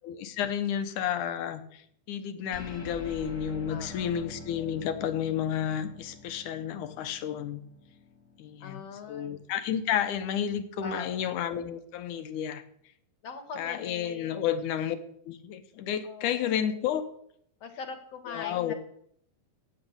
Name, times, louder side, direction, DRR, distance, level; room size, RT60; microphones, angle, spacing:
voice 1, 0.0-1.8 2.1-7.6 8.4-12.6 13.6-15.0 15.3-17.0 18.3-18.7, left 9 dB, 70° left, 10 dB, 2.4 m, -31 dB
sound 1, 2.5-9.3, left 2 dB, 30° left, 1.8 m, -46 dB
voice 2, 3.7-4.2 8.6-9.3 10.8-11.3 13.2-14.5 16.0-16.7 17.6-18.7, left 5 dB, 55° left, 7 dB, 2.2 m, -42 dB
15.5 x 7.2 x 8.8 m, 0.69 s
omnidirectional pair, 4.0 m